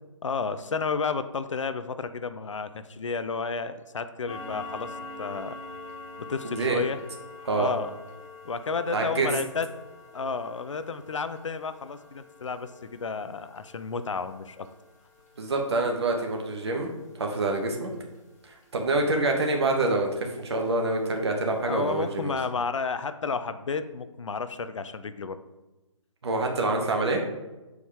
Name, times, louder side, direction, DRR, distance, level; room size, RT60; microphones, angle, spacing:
voice 1, 0.2-4.9 5.2-5.6 6.2-7.0 7.6-7.9 8.4-9.7 10.1-14.7 21.7-25.4, left 5 dB, 65° left, 12 dB, 0.5 m, -31 dB
sound 1, 4.3-19.4 19.7-20.0 20.4-20.5 20.9-21.0 21.5-21.6 21.9-22.0, left 3 dB, 30° left, 1.2 m, -46 dB
voice 2, 6.5-6.8 7.4-7.7 8.9-9.3 15.4-16.9 17.2-17.9 18.7-22.4 26.2-27.2, right 2 dB, 55° right, 2 dB, 1.2 m, -26 dB
7.0 x 4.7 x 3.4 m, 1.1 s
figure-of-eight pair, 145°, 17 cm